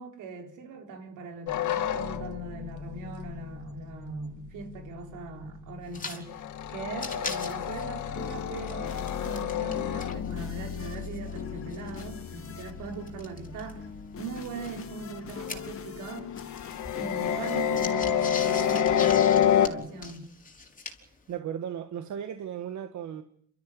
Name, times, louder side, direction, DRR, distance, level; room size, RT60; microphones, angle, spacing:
voice 1, 0.0-6.4 6.7-13.9 14.2-16.3 17.0-20.3, right 4 dB, 90° right, 4.3 m, -40 dB
sound 1, 1.5-6.0 6.3-15.8 16.4-19.7, left 9 dB, 75° left, 1.9 m, -29 dB
sound 2, 5.9-6.2 6.5-6.6 6.9-9.8 10.0-13.7 14.4-16.1 16.3-21.2, left 4 dB, 25° left, 4.1 m, -41 dB
sound 3, 7.8-20.1, left 7 dB, 45° left, 2.1 m, -43 dB
voice 2, 21.3-23.2, right 9 dB, 70° right, 1.7 m, -36 dB
28.0 x 13.5 x 9.5 m
cardioid pair, 90°, 30 cm